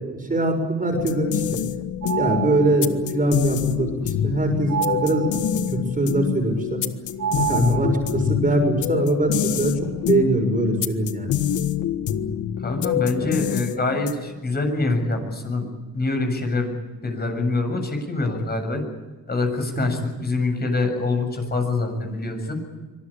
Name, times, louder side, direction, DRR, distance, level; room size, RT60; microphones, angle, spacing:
voice 1, 0.0-1.6 2.1-6.8 7.3-11.3 13.2-13.3, right 2 dB, 25° right, 5 dB, 6.5 m, -23 dB
sound 1, 0.9-14.4, left 10 dB, 75° left, 1.4 m, -27 dB
sound 2, 2.0-3.0 4.7-5.7 7.2-8.3, right 9 dB, 70° right, 1.9 m, -28 dB
voice 2, 7.5-7.9 12.6-15.7 15.9-16.7 17.0-18.8 19.3-22.6, left 3 dB, 30° left, 5 dB, 7.4 m, -25 dB
25.0 x 19.5 x 8.7 m, 1.3 s
cardioid pair, 90°, 30 cm